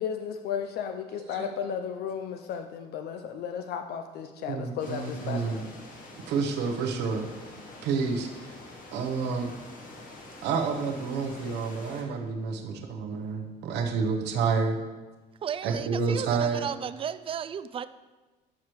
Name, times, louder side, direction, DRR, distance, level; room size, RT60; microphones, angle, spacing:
voice 1, 0.0-5.6, left 7 dB, 70° left, 6 dB, 0.5 m, -34 dB
voice 2, 1.1-1.5 4.4-5.7 6.3-7.3 7.8-8.5 8.9-9.5 10.4-14.8 15.6-16.6, right 5 dB, 85° right, 4 dB, 0.9 m, -29 dB
sound 1, 4.8-12.0, left 2 dB, 55° left, 1.5 m, -46 dB
voice 3, 15.4-17.9, right 8 dB, 35° right, 13 dB, 0.3 m, -34 dB
12.0 x 4.8 x 3.1 m, 1.2 s
cardioid pair, 110°, 17 cm